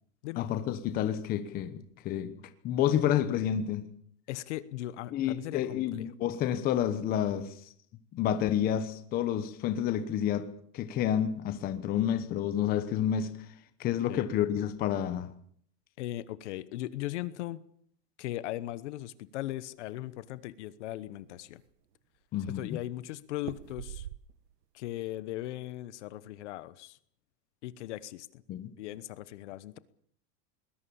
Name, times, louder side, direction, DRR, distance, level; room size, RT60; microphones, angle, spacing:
voice 1, 0.4-3.9 5.1-7.5 8.1-13.4 13.8-15.3 22.3-22.8 28.5-28.7, left 10 dB, 20° left, 1.1 m, -30 dB
voice 2, 4.3-6.1 14.1-14.3 16.0-17.6 18.2-21.6 22.5-24.1 24.7-27.0 27.6-28.4 28.8-29.8, left 15 dB, 45° left, 1.1 m, -38 dB
sound 1, 19.5-20.4 20.9-21.0 21.3-21.9 23.4-24.6 25.0-25.5, right 12 dB, 90° right, 1.4 m, -44 dB
21.5 x 20.5 x 7.2 m
supercardioid pair, 170°, 48 cm